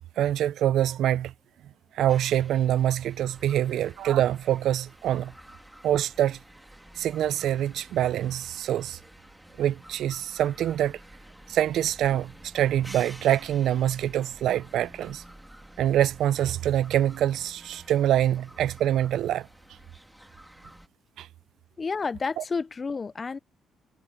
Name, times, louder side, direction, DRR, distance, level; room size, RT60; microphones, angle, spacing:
voice 1, 0.2-1.3 2.0-5.3 5.8-6.4 7.0-9.0 9.6-11.0 11.5-15.2 15.8-19.5 21.2-21.3 22.4-22.5, right 11 dB, 75° right, 0.5 m, -25 dB
sound 1, 2.1-20.9, right 1 dB, 5° right, 2.3 m, -50 dB
voice 2, 21.8-23.4, left 4 dB, 35° left, 0.5 m, -30 dB
cardioid pair, 90°, 0 cm